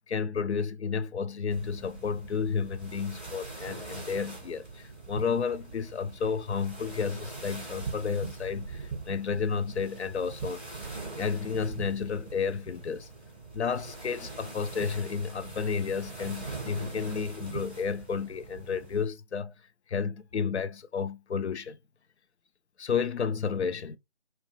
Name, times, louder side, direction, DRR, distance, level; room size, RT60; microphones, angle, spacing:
voice 1, 0.1-10.6 11.2-13.1 13.5-19.5 19.9-21.8 22.8-24.0, left 6 dB, 75° left, 0.5 m, -31 dB
sound 1, 1.5-19.1, right 3 dB, ahead, 0.5 m, -42 dB
2.8 x 2.2 x 2.8 m
figure-of-eight pair, 155°, 34 cm